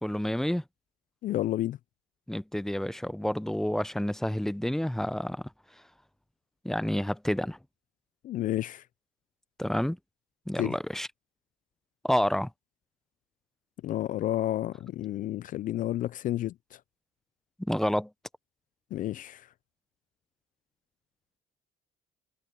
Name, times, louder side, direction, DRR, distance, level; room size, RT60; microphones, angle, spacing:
voice 1, 0.0-0.6 2.3-5.4 6.6-7.6 9.6-10.0 10.5-11.1 12.0-12.5 17.6-18.1, equal, ahead, 0.5 m, -29 dB
voice 2, 1.2-1.8 8.2-8.8 10.6-10.8 13.8-16.8 18.9-19.5, left 13 dB, 55° left, 0.4 m, -31 dB
cardioid pair, 110°, 17 cm